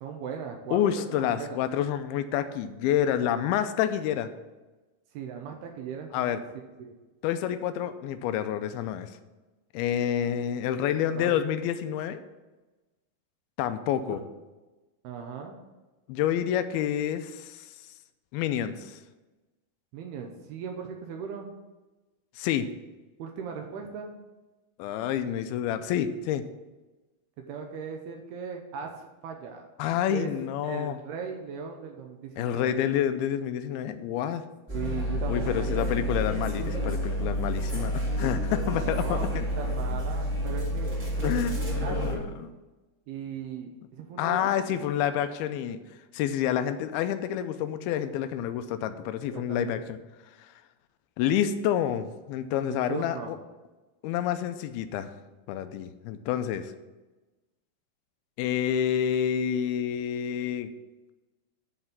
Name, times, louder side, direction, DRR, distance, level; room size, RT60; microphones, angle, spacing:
voice 1, 0.0-1.6 5.1-6.2 6.8-7.0 11.1-11.3 14.1-14.2 15.0-15.6 19.9-21.5 23.2-24.1 27.5-29.7 30.1-30.3 30.6-32.7 34.7-35.9 38.7-42.3 43.1-44.8 49.3-49.7 52.7-53.3, right 6 dB, 80° right, 3 dB, 2.8 m, -38 dB
voice 2, 0.7-4.3 6.1-6.4 7.2-9.1 9.7-12.2 13.6-14.2 16.1-17.7 18.3-19.0 22.4-22.7 24.8-26.4 29.8-31.0 32.4-34.4 35.3-39.4 41.2-41.6 41.9-42.5 44.2-45.8 46.1-50.0 51.2-53.4 54.0-55.1 55.5-56.7 58.4-60.7, left 10 dB, 80° left, 10 dB, 2.3 m, -28 dB
sound 1, 34.7-42.1, equal, 20° right, 1.1 m, -29 dB
10.5 x 4.3 x 7.3 m, 1.1 s
omnidirectional pair, 4.8 m